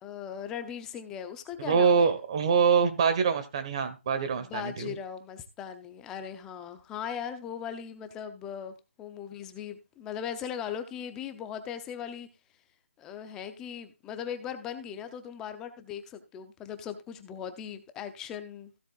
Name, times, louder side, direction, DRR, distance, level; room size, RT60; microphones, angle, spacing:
voice 1, 0.0-2.1 4.3-12.3 13.0-18.7, left 8 dB, 10° left, 9 dB, 0.6 m, -39 dB
voice 2, 1.6-4.9, right 6 dB, 25° right, 10 dB, 1.4 m, -25 dB
15.5 x 7.4 x 2.4 m, 0.27 s
figure-of-eight pair, 170°, 7 cm